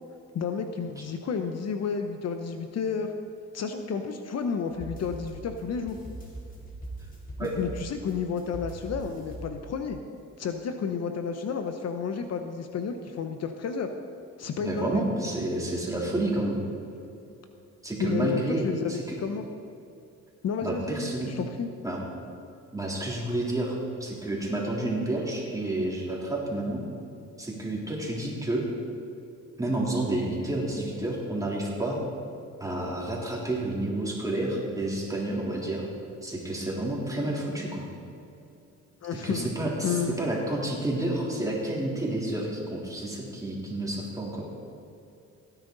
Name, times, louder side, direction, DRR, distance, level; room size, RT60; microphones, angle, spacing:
voice 1, 0.3-3.1 3.5-6.0 7.4-10.0 10.4-13.9 14.4-15.0 18.0-18.9 19.2-19.5 20.4-21.7 39.0-39.5 39.8-40.1, left 6 dB, 55° left, 6 dB, 0.9 m, -31 dB
sound 1, 4.7-10.0, right 2 dB, 30° left, 3.2 m, -41 dB
voice 2, 14.6-16.6 17.8-19.2 20.6-21.3 21.8-22.0 22.7-26.8 27.4-28.7 29.6-32.0 32.6-35.9 36.2-37.8 39.2-44.4, right 1 dB, 10° right, -4 dB, 3.3 m, -30 dB
16.5 x 10.0 x 4.0 m, 2.6 s
cardioid pair, 90°, 30 cm